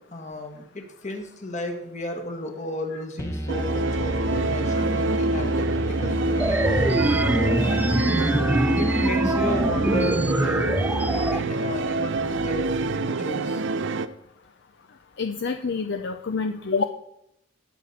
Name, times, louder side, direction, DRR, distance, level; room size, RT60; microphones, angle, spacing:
voice 1, 0.1-5.7 6.0-8.1 8.8-13.6, left 1 dB, 35° left, 4 dB, 1.7 m, -33 dB
sound 1, 3.2-10.9, equal, 15° left, 1.3 m, -30 dB
sound 2, 3.5-14.1, right 3 dB, 65° right, 0.6 m, -26 dB
sound 3, 6.4-11.4, right 1 dB, 10° right, 0.3 m, -24 dB
voice 2, 15.2-16.8, left 4 dB, 60° left, 7 dB, 0.6 m, -27 dB
18.5 x 6.8 x 4.1 m, 0.79 s
head